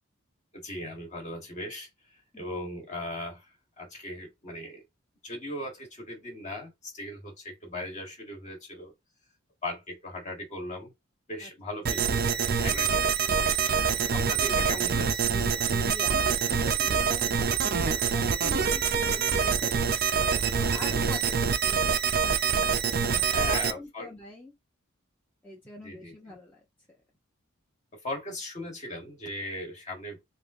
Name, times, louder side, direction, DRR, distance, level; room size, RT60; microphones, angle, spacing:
voice 1, 0.5-1.9 2.4-3.5 3.8-4.8 5.2-8.9 9.6-10.9 11.3-13.6 14.1-15.3 20.2-20.4 20.7-20.8 23.1-24.1 25.8-26.1 28.0-30.2, left 1 dB, 35° left, 1.4 m, -38 dB
voice 2, 2.3-2.8 11.4-11.5 11.9-12.2 13.8-14.8 15.8-20.1 20.4-22.6 22.9-24.5 25.4-26.6, left 2 dB, 10° left, 0.7 m, -45 dB
sound 1, 11.9-23.7, right 6 dB, 45° right, 0.4 m, -25 dB
3.4 x 2.7 x 2.5 m
head